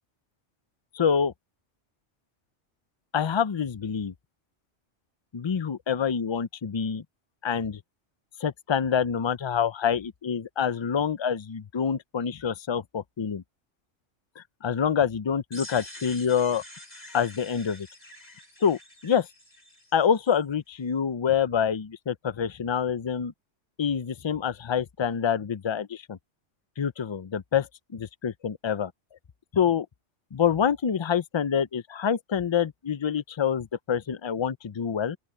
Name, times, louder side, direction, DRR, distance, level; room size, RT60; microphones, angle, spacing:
voice 1, 0.9-1.3 3.1-4.1 5.3-7.0 7.4-7.8 8.4-13.4 14.4-16.6 17.1-17.9 18.6-19.3 19.9-23.3 23.8-26.2 26.8-28.9 29.5-29.9 30.3-35.2, left 7 dB, 50° left, 0.3 m, -26 dB
sound 1, 15.5-20.4, left 1 dB, 35° left, 3.8 m, -46 dB
open air
omnidirectional pair, 1.3 m